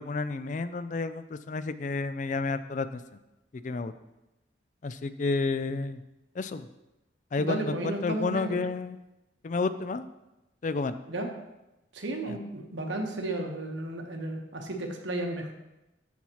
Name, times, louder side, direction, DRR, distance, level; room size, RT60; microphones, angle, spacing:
voice 1, 0.0-3.0 3.6-3.9 4.8-6.0 6.4-6.7 7.3-9.1 9.4-10.0 10.6-11.0 12.3-12.4, left 3 dB, 45° left, 12 dB, 0.4 m, -31 dB
voice 2, 7.4-8.6 11.1-11.3 11.9-15.5, right 1 dB, 90° right, 3 dB, 1.2 m, -33 dB
13.0 x 5.6 x 3.0 m, 0.97 s
head